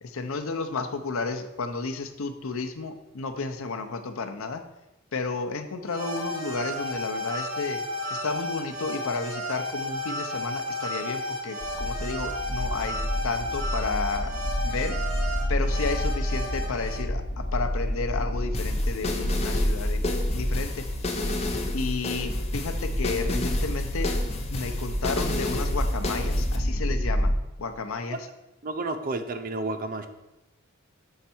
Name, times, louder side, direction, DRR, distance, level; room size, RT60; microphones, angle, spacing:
voice 1, 0.0-4.6 5.1-7.8 8.1-14.3 14.6-15.0 15.5-20.9 21.7-24.1 24.5-27.3 27.6-28.2, left 4 dB, 80° left, 8 dB, 0.6 m, -32 dB
sound 1, 5.9-17.0, left 1 dB, 80° right, 1.7 m, -33 dB
sound 2, 11.6-27.4, equal, 55° left, 0.9 m, -29 dB
sound 3, 18.5-26.6, left 2 dB, 30° left, 0.7 m, -33 dB
voice 2, 28.6-30.1, right 2 dB, 40° right, 8 dB, 0.5 m, -31 dB
6.5 x 4.6 x 4.3 m, 0.95 s
head